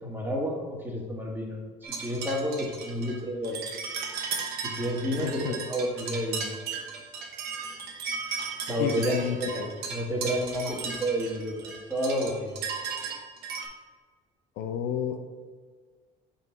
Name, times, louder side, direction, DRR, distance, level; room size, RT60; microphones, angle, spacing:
voice 1, 0.0-3.7 4.6-6.5 8.7-12.6, equal, 10° right, -2 dB, 1.5 m, -30 dB
sound 1, 1.8-13.7, right 5 dB, 75° right, 1.0 m, -36 dB
voice 2, 5.1-5.7 8.8-9.7 14.6-15.2, left 8 dB, 85° left, 7 dB, 0.6 m, -31 dB
5.7 x 4.0 x 4.5 m, 1.5 s
cardioid pair, 110°, 17 cm